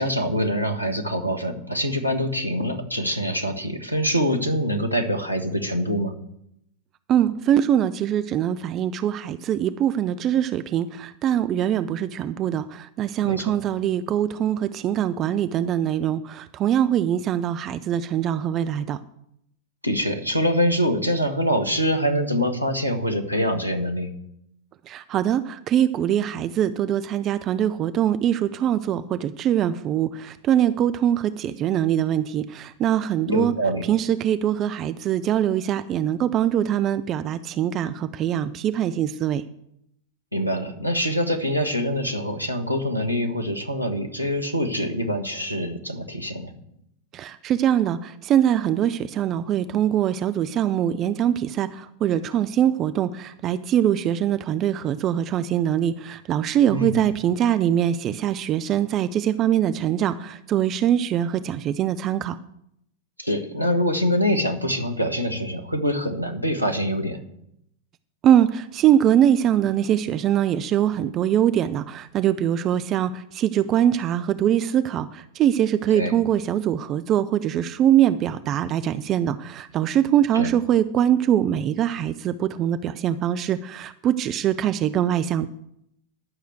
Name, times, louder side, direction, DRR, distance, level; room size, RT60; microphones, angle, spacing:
voice 1, 0.0-6.1 13.2-13.6 19.8-24.1 33.3-33.8 40.3-46.5 56.7-57.0 63.2-67.2 75.9-76.1 80.3-80.5, equal, 90° right, 5 dB, 1.4 m, -24 dB
voice 2, 7.1-19.0 24.9-33.5 33.9-39.4 47.1-62.4 68.2-85.5, right 10 dB, 30° right, 12 dB, 0.5 m, -23 dB
11.5 x 6.5 x 8.0 m, 0.76 s
figure-of-eight pair, 90°, 0 cm